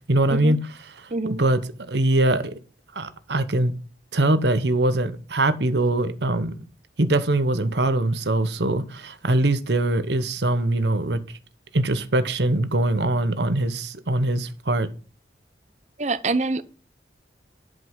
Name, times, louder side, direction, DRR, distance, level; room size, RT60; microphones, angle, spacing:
voice 1, 0.1-0.6 0.9-1.6 1.9-2.6 2.9-3.7 4.1-6.6 7.0-11.2 11.7-14.9, right 2 dB, 80° right, 1.1 m, -22 dB
voice 2, 1.1-1.4 16.0-16.6, right 3 dB, 40° right, 0.7 m, -25 dB
11.0 x 5.5 x 5.6 m
head